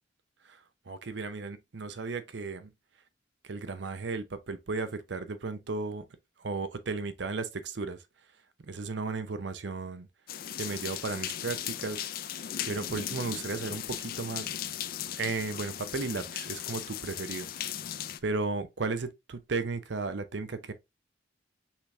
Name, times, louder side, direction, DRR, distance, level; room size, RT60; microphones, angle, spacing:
voice 1, 0.9-2.7 3.4-6.1 6.4-8.0 8.7-10.1 10.6-12.0 12.6-14.5 15.2-17.5 18.2-20.7, right 3 dB, 70° right, 0.6 m, -34 dB
sound 1, 10.3-18.2, left 10 dB, 50° left, 0.4 m, -37 dB
5.7 x 3.4 x 2.7 m
head